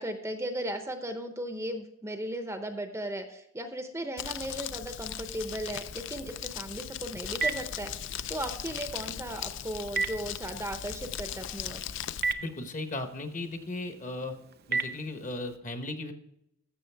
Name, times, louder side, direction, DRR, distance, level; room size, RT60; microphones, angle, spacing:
voice 1, 0.0-11.8, right 1 dB, 10° right, 7 dB, 0.7 m, -36 dB
Crumpling crinkling, 4.2-12.3, left 10 dB, 55° left, 0.4 m, -38 dB
Telephone, 6.7-15.6, right 4 dB, 45° right, 0.6 m, -38 dB
voice 2, 12.4-14.3 14.7-16.1, left 2 dB, 35° left, 7 dB, 1.0 m, -36 dB
14.5 x 6.6 x 3.4 m, 0.80 s
head